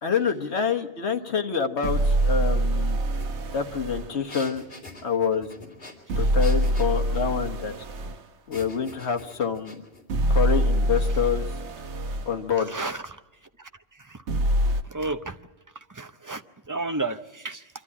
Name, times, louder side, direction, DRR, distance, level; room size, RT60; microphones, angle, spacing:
voice 1, 0.0-3.0 3.5-4.6 5.0-5.5 6.2-7.7 8.5-9.8 10.3-11.5 12.3-12.7, left 6 dB, 75° left, 5 dB, 1.6 m, -26 dB
sound 1, 1.8-4.1 6.1-8.2 10.1-12.3 14.3-14.8, right 1 dB, 90° right, 1.3 m, -24 dB
sound 2, 3.2-3.3 3.6-7.3 8.5-10.0, left 2 dB, 60° left, 3.4 m, -45 dB
voice 2, 12.6-13.2 13.6-13.7 14.0-14.2 14.8-15.4 15.9-17.7, right 2 dB, 20° right, 8 dB, 0.6 m, -32 dB
25.0 x 13.0 x 9.8 m, 1.0 s
omnidirectional pair, 1.1 m